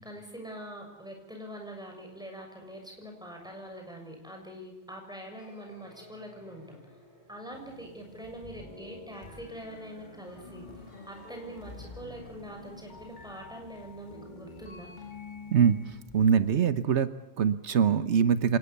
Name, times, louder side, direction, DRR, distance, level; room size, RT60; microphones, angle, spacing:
voice 1, 0.0-6.8 7.3-10.7 11.1-14.9, equal, 5° right, 2 dB, 6.5 m, -44 dB
sound 1, 5.4-15.9, left 1 dB, 80° left, 6.5 m, -55 dB
sound 2, 7.5-16.7, left 3 dB, 40° left, 2.1 m, -48 dB
voice 2, 16.1-18.6, right 7 dB, 90° right, 13 dB, 1.3 m, -23 dB
26.5 x 19.0 x 7.1 m, 0.99 s
omnidirectional pair, 1.1 m